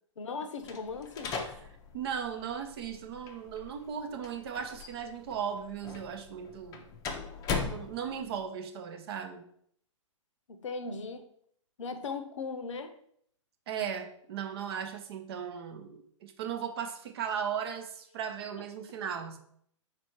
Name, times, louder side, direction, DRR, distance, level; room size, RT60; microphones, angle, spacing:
voice 1, 0.2-1.4 10.5-11.3 11.8-12.9 19.1-19.2, left 4 dB, 70° left, 8 dB, 0.6 m, -38 dB
sound 1, 0.6-8.4, left 5 dB, 20° left, 0.5 m, -40 dB
voice 2, 1.9-6.9 7.6-9.4 13.7-19.4, right 8 dB, 50° right, 7 dB, 0.6 m, -37 dB
4.6 x 2.5 x 4.4 m, 0.66 s
figure-of-eight pair, 115°, 17 cm